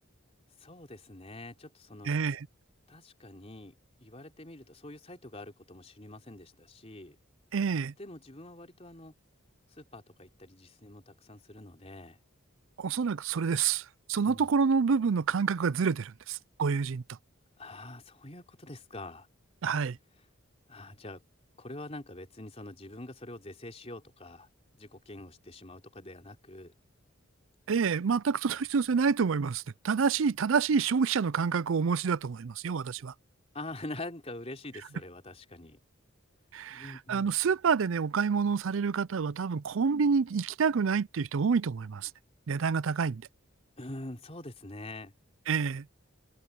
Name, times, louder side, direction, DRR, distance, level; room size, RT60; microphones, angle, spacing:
voice 1, 0.6-2.1 2.9-7.2 8.0-9.1 9.7-12.2 14.1-14.5 17.6-19.3 20.7-21.2 21.6-24.5 24.8-26.7 33.5-35.8 36.7-37.3 43.8-45.1, left 2 dB, 30° left, 3.5 m, -45 dB
voice 2, 2.0-2.5 7.5-7.9 12.8-17.2 19.6-20.0 27.7-33.1 36.5-42.1 42.5-43.3 45.5-45.9, right 5 dB, 70° right, 0.5 m, -28 dB
head